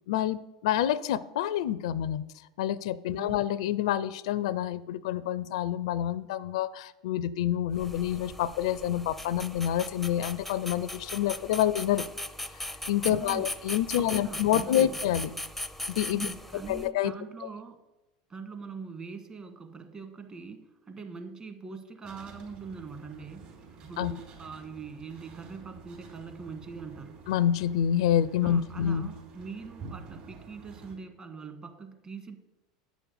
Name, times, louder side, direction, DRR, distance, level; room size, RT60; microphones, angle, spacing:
voice 1, 0.1-2.2 2.6-12.1 12.9-15.3 15.9-16.3 16.7-17.1 24.0-24.1 27.3-29.1, left 11 dB, 70° left, 18 dB, 0.4 m, -27 dB
sound 1, 7.7-16.9, left 1 dB, ahead, 0.6 m, -39 dB
voice 2, 13.1-13.5 14.0-15.0 16.1-17.8 18.3-23.5 23.8-27.2 28.4-32.4, right 5 dB, 25° right, 6 dB, 1.6 m, -42 dB
sound 2, 22.0-31.0, right 5 dB, 45° right, 4.2 m, -49 dB
9.0 x 6.2 x 6.9 m, 0.96 s
hypercardioid pair, 90°, 3 cm